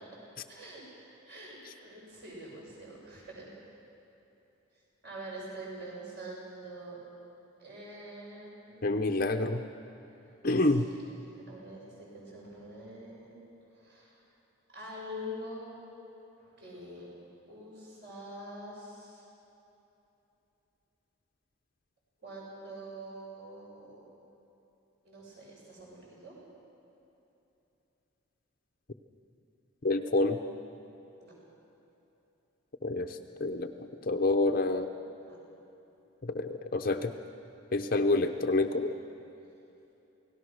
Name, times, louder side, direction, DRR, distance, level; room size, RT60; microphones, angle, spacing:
voice 1, 0.5-0.8 1.3-3.5 5.0-7.0 7.6-9.0 10.5-13.4 13.7-14.2 14.7-15.8 16.4-17.1 17.5-19.2 22.2-24.0 25.1-26.4 31.2-31.3 35.2-35.4, equal, 50° right, -5 dB, 7.3 m, -45 dB
voice 2, 8.8-9.6 10.4-10.8 29.8-30.4 32.8-33.7 34.0-34.9 36.2-37.1 37.7-38.9, left 2 dB, 45° left, 6 dB, 0.7 m, -28 dB
28.0 x 18.0 x 6.4 m, 3.0 s
head